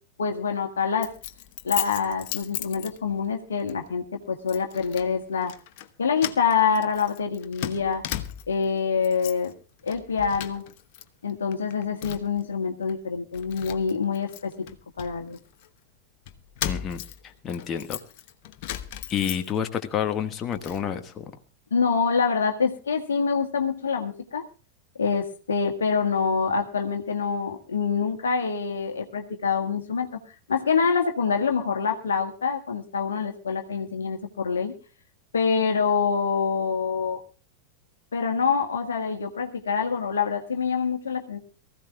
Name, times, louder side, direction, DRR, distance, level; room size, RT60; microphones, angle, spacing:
voice 1, 0.2-1.1 1.6-5.5 6.0-8.0 8.5-9.5 9.8-10.6 11.2-14.7 15.0-15.4 21.7-24.4 25.0-30.2 30.5-34.7 35.3-37.2 38.1-41.4, left 5 dB, 70° left, 4 dB, 1.7 m, -26 dB
Keys jangling, 1.0-3.3 3.7-3.9 4.5-5.1 5.4-5.9 6.2-8.7 9.0-9.5 9.8-11.0 11.3-12.4 12.9-13.0 13.3-15.7 16.3-19.8 20.2-20.8, left 12 dB, 50° left, 1.1 m, -36 dB
voice 2, 16.6-17.0 17.4-18.0 19.1-21.2, left 8 dB, 25° left, 7 dB, 1.5 m, -29 dB
23.5 x 15.5 x 2.3 m, 0.35 s
figure-of-eight pair, 90°, 0 cm